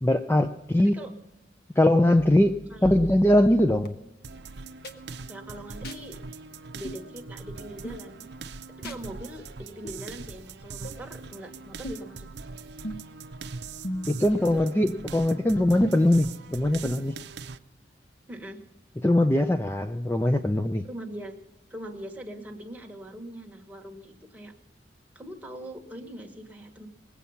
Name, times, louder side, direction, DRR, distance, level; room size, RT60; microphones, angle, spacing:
voice 1, 0.0-0.9 1.8-2.5 2.8-3.9 14.1-17.1 19.0-20.8, left 1 dB, 15° left, 7 dB, 0.5 m, -21 dB
sound 1, 2.2-3.9 4.8-5.0 5.8-6.0 6.8-7.0 7.8-8.0 8.8-9.0 9.8-10.0 10.8-11.0 11.8-12.2 12.8-13.2 13.8-14.3 14.8-14.9 15.9-16.0 16.8-16.9, right 1 dB, 55° left, 1.2 m, -38 dB
sound 2, 4.2-17.6, right 4 dB, 70° right, 0.6 m, -42 dB
voice 2, 5.3-6.2 6.7-8.3 8.8-12.3 14.3-14.6 18.3-18.6 20.8-21.4 21.7-24.5 25.1-26.9, right 1 dB, 10° right, 1 dB, 1.5 m, -41 dB
20.5 x 8.4 x 5.7 m, 0.94 s
head